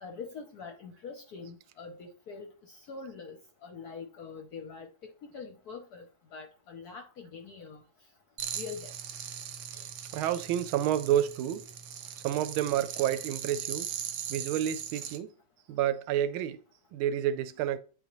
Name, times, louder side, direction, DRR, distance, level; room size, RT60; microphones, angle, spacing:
voice 1, 0.0-3.4 3.6-4.9 5.2-6.0 6.3-7.8 8.5-8.9, left 5 dB, 65° left, 1.0 m, -44 dB
sound 1, 8.4-15.2, right 9 dB, 70° right, 1.2 m, -40 dB
voice 2, 10.1-11.6 12.2-13.9 14.3-15.3 15.7-16.6 16.9-17.8, right 11 dB, 85° right, 1.4 m, -29 dB
9.3 x 4.0 x 3.0 m
omnidirectional pair, 2.2 m